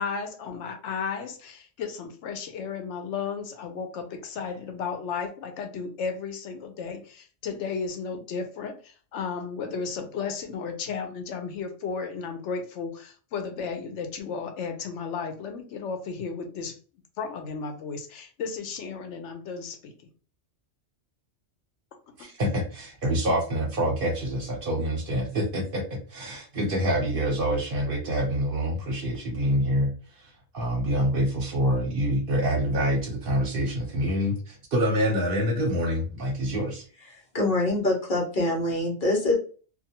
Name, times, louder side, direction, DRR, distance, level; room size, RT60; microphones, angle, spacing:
voice 1, 0.0-16.8 17.2-19.9 22.2-22.3, left 5 dB, 85° left, 6 dB, 0.9 m, -34 dB
voice 2, 22.2-36.8, equal, 55° right, 2 dB, 0.9 m, -26 dB
voice 3, 37.1-39.3, left 2 dB, 50° left, -2 dB, 1.1 m, -25 dB
2.5 x 2.3 x 2.8 m, 0.39 s
omnidirectional pair, 1.2 m